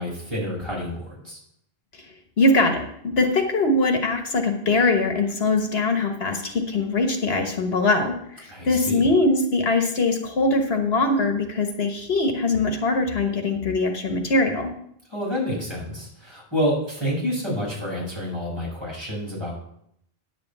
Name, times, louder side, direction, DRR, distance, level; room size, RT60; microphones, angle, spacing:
voice 1, 0.0-1.4 8.5-9.1 15.1-19.5, equal, 25° right, -5 dB, 5.3 m, -28 dB
voice 2, 2.4-14.7, left 2 dB, 75° left, 4 dB, 1.5 m, -22 dB
10.0 x 5.1 x 8.0 m, 0.72 s
omnidirectional pair, 1.1 m